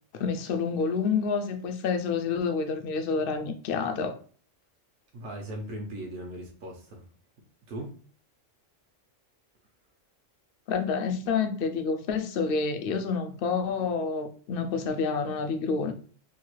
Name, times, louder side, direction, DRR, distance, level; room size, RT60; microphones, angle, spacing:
voice 1, 0.2-4.2 10.7-15.9, left 5 dB, 60° left, 0.6 m, -28 dB
voice 2, 5.1-7.0 7.7-7.9, right 1 dB, 80° right, 1.2 m, -38 dB
3.0 x 2.4 x 3.0 m
omnidirectional pair, 1.3 m